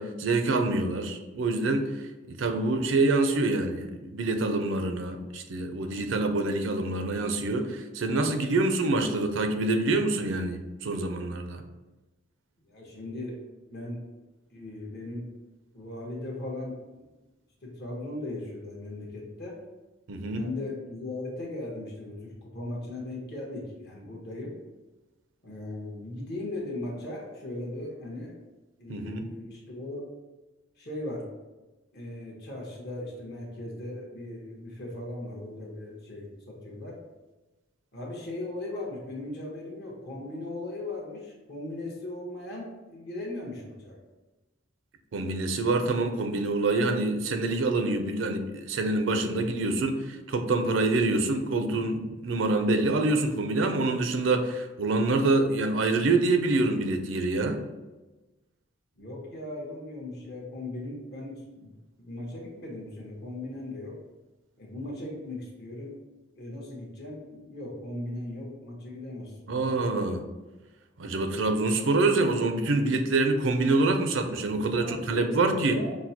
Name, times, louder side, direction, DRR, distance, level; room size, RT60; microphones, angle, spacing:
voice 1, 0.0-1.9 2.3-11.6 20.1-20.4 28.9-29.3 45.1-57.6 69.5-70.2 71.0-75.8, right 2 dB, 90° right, 6 dB, 0.5 m, -26 dB
voice 2, 12.6-13.3 13.7-14.0 14.5-15.2 15.7-17.0 17.6-19.6 20.3-24.5 25.4-28.4 28.8-30.1 30.8-31.2 31.9-37.0 37.9-44.0 59.0-61.7 62.0-63.9 64.6-65.9 66.3-69.8 74.7-76.0, left 2 dB, 60° left, -3 dB, 1.2 m, -38 dB
6.1 x 2.1 x 2.8 m, 1.1 s
head